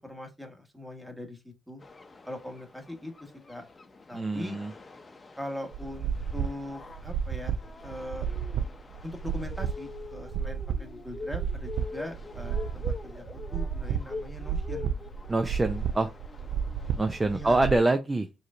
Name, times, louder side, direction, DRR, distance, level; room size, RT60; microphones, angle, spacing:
voice 1, 0.0-1.8 2.3-3.6 4.1-4.6 5.4-8.3 9.0-15.0 17.3-17.6, left 1 dB, 5° right, 1.4 m, -41 dB
sound 1, 1.8-17.9, left 3 dB, 30° left, 0.8 m, -45 dB
voice 2, 4.1-4.7 15.3-16.1 17.0-18.3, right 2 dB, 20° right, 0.5 m, -25 dB
sound 2, 5.7-17.8, right 7 dB, 70° right, 0.4 m, -32 dB
4.8 x 3.2 x 2.5 m
cardioid pair, 90°, 0 cm